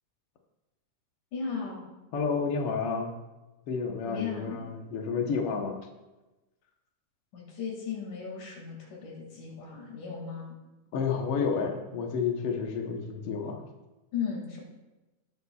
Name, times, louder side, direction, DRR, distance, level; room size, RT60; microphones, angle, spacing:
voice 1, 1.3-1.8 4.0-4.6 7.3-10.5 14.1-14.6, left 6 dB, 85° left, -2 dB, 3.7 m, -36 dB
voice 2, 2.1-3.2 3.7-5.8 10.9-13.6, left 5 dB, 60° left, 2 dB, 1.7 m, -30 dB
19.0 x 8.5 x 2.4 m, 1.1 s
omnidirectional pair, 3.5 m